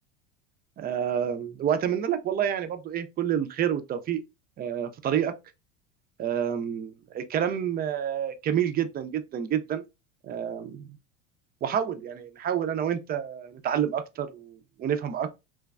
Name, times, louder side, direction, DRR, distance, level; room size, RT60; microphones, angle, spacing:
voice 1, 0.8-4.2 4.6-5.3 6.2-9.8 10.2-11.0 11.6-15.3, right 9 dB, 25° right, 0.4 m, -28 dB
3.1 x 2.2 x 2.3 m
hypercardioid pair, 85°, 38 cm